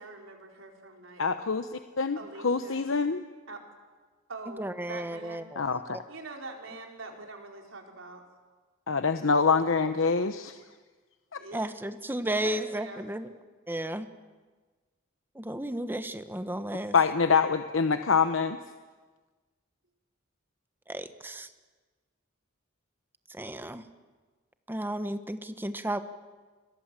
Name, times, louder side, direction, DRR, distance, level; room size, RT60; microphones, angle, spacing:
voice 1, 0.0-1.5 2.2-2.9 3.5-3.6 4.3-5.5 6.1-8.2 11.4-11.7 12.4-13.1, right 3 dB, 75° right, 2 dB, 4.1 m, -44 dB
voice 2, 1.2-2.2 2.4-3.2 5.6-6.0 8.9-10.6 11.3-11.4 16.9-18.6, left 5 dB, 75° left, 9 dB, 0.9 m, -25 dB
voice 3, 4.6-5.6 11.5-13.3 13.7-14.1 15.3-16.9 20.9-21.5 23.3-23.8 24.7-26.0, right 1 dB, 10° right, 10 dB, 1.2 m, -33 dB
29.0 x 22.5 x 7.5 m, 1.4 s
head